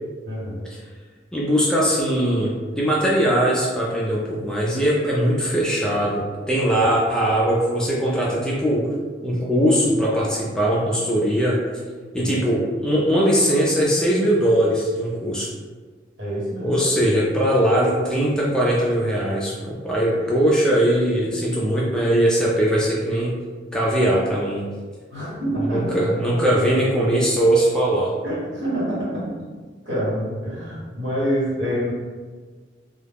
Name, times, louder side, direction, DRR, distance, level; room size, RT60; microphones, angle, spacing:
voice 1, 0.3-0.7 12.1-12.4 16.2-16.7 17.7-17.9 25.1-26.8 28.2-29.3 29.8-31.9, equal, 80° right, -7 dB, 1.2 m, -27 dB
voice 2, 1.3-8.9 9.2-11.6 12.1-15.5 16.6-23.4 23.7-24.7 25.7-28.1, right 1 dB, 5° left, -5 dB, 0.3 m, -20 dB
2.3 x 2.1 x 3.3 m, 1.4 s
head